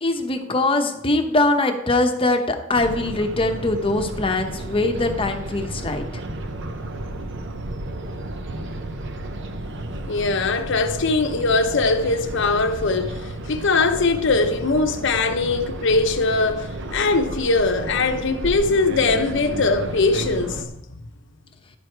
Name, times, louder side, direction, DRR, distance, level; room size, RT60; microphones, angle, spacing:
voice 1, 0.0-6.2, left 2 dB, 25° left, 0.9 m, -22 dB
sound 1, 2.7-20.7, right 1 dB, 60° right, 0.8 m, -32 dB
voice 2, 10.1-20.7, left 3 dB, 65° left, 0.8 m, -21 dB
11.5 x 4.8 x 4.6 m
head